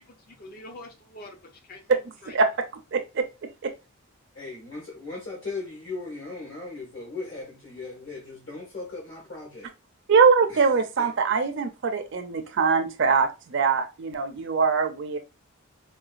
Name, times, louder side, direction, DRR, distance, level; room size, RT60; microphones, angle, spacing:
voice 1, 0.1-2.4, left 1 dB, 40° left, 0.5 m, -45 dB
voice 2, 2.3-2.7 2.9-3.3 3.6-3.7 10.1-15.2, right 5 dB, 55° right, 0.4 m, -22 dB
voice 3, 4.3-9.7 10.5-11.1, left 3 dB, 60° left, 1.3 m, -38 dB
3.8 x 2.2 x 2.4 m
head